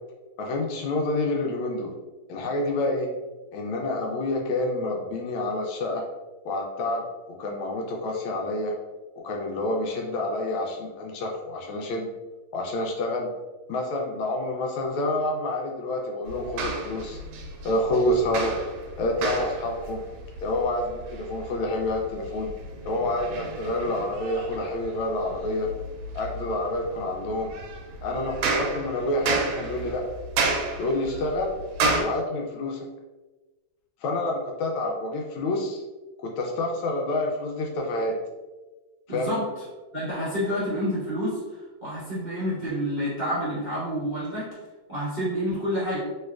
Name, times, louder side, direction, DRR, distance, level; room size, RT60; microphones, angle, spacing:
voice 1, 0.4-1.9 2.3-3.1 3.5-6.0 6.4-8.7 9.2-12.1 12.5-13.3 13.7-17.2 17.6-18.5 19.0-20.0 20.4-22.5 22.8-25.7 26.1-27.5 28.0-30.0 30.8-31.6 32.0-32.8 34.0-35.8 36.2-38.2 39.1-39.3, left 1 dB, 80° left, 0 dB, 1.3 m, -28 dB
sound 1, 16.3-32.0, right 3 dB, 85° right, 1.4 m, -32 dB
voice 2, 39.1-39.4 39.9-44.5 44.9-46.0, equal, 45° right, -11 dB, 0.6 m, -28 dB
3.3 x 3.0 x 2.3 m, 1.2 s
omnidirectional pair, 2.3 m